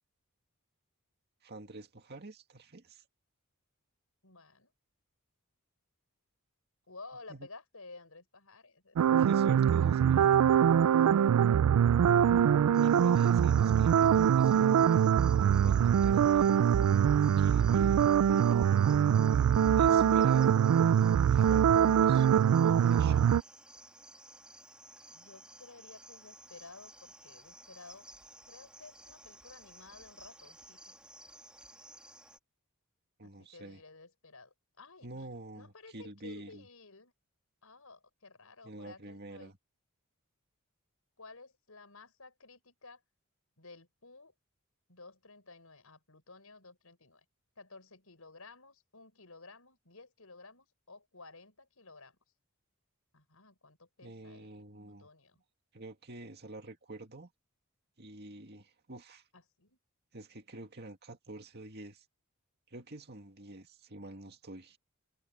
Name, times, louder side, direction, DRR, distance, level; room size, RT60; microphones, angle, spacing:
voice 1, 1.4-3.0 7.3-7.5 9.2-10.3 12.8-15.1 15.6-16.6 17.4-18.9 19.3-20.6 21.3-23.4 33.2-33.8 35.0-36.6 38.6-39.5 54.0-55.1 55.7-57.3 58.0-59.2 60.1-62.0 62.7-64.8, right 2 dB, 50° right, 2.2 m, -47 dB
voice 2, 4.2-4.7 6.9-9.2 10.8-11.3 25.1-28.1 28.5-30.9 33.2-35.3 35.5-37.1 37.6-39.6 41.2-43.0 43.6-44.3 44.9-47.2 47.6-52.2 53.1-54.5 54.9-55.4 59.3-59.8, left 3 dB, 70° left, 6.1 m, -54 dB
sound 1, 9.0-23.4, right 9 dB, 90° right, 0.3 m, -24 dB
Cricket, 12.7-32.4, right 1 dB, 5° right, 2.3 m, -55 dB
head